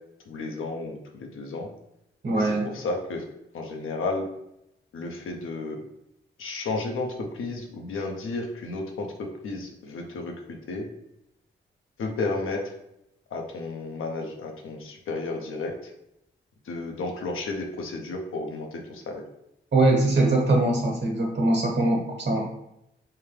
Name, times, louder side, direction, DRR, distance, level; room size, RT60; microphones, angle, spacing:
voice 1, 0.3-1.7 2.3-3.3 3.5-4.3 4.9-5.8 6.4-10.9 12.0-12.6 13.3-15.9 16.6-19.2, left 3 dB, 80° left, 2 dB, 0.6 m, -32 dB
voice 2, 2.2-2.7 19.7-22.4, right 2 dB, 60° right, 0 dB, 1.3 m, -22 dB
3.4 x 2.2 x 3.3 m, 0.81 s
supercardioid pair, 45°, 21 cm